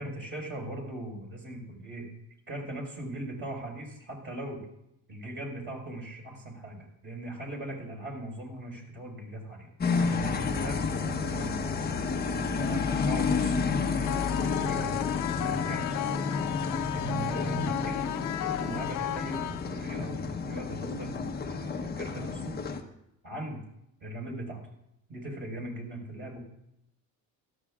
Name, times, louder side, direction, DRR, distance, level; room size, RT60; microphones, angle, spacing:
voice 1, 0.0-2.1 2.5-4.6 5.1-11.8 12.5-13.9 14.3-15.1 15.4-15.9 16.8-18.1 18.5-22.5 23.2-23.6 24.0-24.6 25.1-26.4, right 1 dB, 30° right, -1 dB, 5.0 m, -39 dB
sound 1, 9.8-22.8, left 5 dB, 25° left, 1.0 m, -30 dB
sound 2, 14.1-20.1, left 13 dB, 60° left, 0.7 m, -35 dB
16.5 x 13.5 x 2.5 m, 0.80 s
cardioid pair, 130°, 36 cm